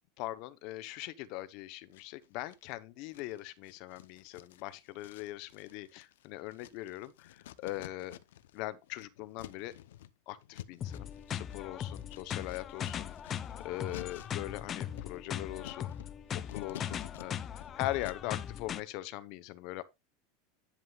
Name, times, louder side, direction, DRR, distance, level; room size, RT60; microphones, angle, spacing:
voice 1, 0.2-8.2 8.5-9.7 10.3-15.9 16.3-17.4 17.8-19.8, left 16 dB, 50° left, 0.8 m, -41 dB
sound 1, 1.9-2.7 3.1-8.6 8.8-18.4, left 12 dB, 90° left, 0.6 m, -51 dB
sound 2, 10.8-18.8, left 9 dB, 25° left, 0.5 m, -39 dB
11.0 x 7.5 x 2.4 m
supercardioid pair, 155°, 0 cm